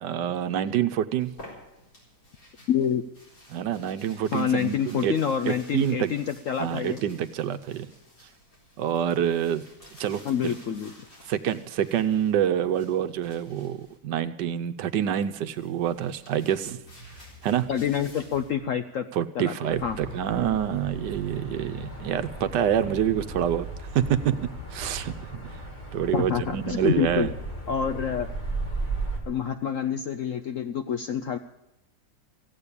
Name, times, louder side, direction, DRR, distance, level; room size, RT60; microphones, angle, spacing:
voice 1, 0.0-1.3 3.5-5.1 5.4-6.1 6.6-7.9 8.8-9.6 10.0-10.6 11.3-16.8 17.4-17.7 19.1-23.7 23.9-25.6 25.9-27.3, right 10 dB, 75° right, 12 dB, 1.3 m, -27 dB
sound 1, 1.2-14.0 15.0-18.5, equal, 50° left, 4.6 m, -52 dB
voice 2, 2.7-3.0 4.3-7.0 10.2-11.1 17.7-19.1 19.3-19.5 19.8-20.0 26.1-27.3 27.7-28.3 29.3-31.4, left 8 dB, 65° left, 8 dB, 0.8 m, -27 dB
sound 2, 19.7-29.2, right 2 dB, 25° left, 2.7 m, -36 dB
15.5 x 8.8 x 8.3 m, 0.89 s
omnidirectional pair, 1.9 m